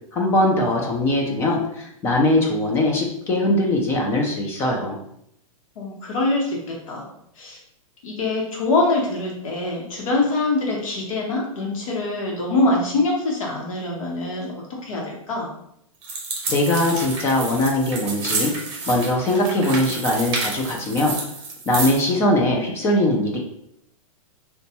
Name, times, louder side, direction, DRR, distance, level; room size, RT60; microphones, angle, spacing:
voice 1, 0.1-5.0 16.5-18.5 18.9-21.2 21.7-23.4, left 1 dB, 15° left, 1 dB, 0.3 m, -21 dB
voice 2, 5.8-7.1 7.4-7.6 8.0-15.5, left 2 dB, 65° left, -2 dB, 1.0 m, -24 dB
sound 1, 16.0-22.1, right 3 dB, 25° right, 0.7 m, -30 dB
3.9 x 2.2 x 2.8 m, 0.74 s
hypercardioid pair, 155°, 18 cm